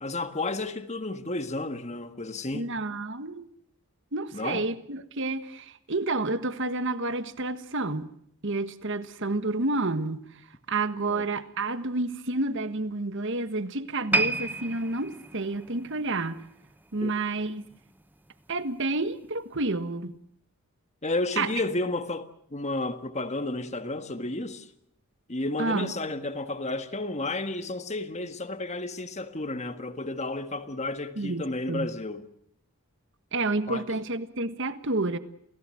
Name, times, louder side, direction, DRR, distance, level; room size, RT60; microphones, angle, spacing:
voice 1, 0.0-2.7 4.3-4.6 11.1-11.2 17.0-17.1 21.0-24.7 25.3-32.2 33.7-33.8, left 2 dB, 30° left, 1.5 m, -32 dB
voice 2, 2.5-3.5 4.1-8.1 8.4-10.3 10.7-16.4 16.9-17.6 18.5-20.2 21.4-21.5 25.6-25.9 31.2-31.9 33.3-35.2, right 2 dB, 55° right, 1.5 m, -30 dB
sound 1, 14.1-17.4 17.7-18.0 18.6-18.7, right 2 dB, 10° right, 0.9 m, -31 dB
28.5 x 18.0 x 7.7 m
head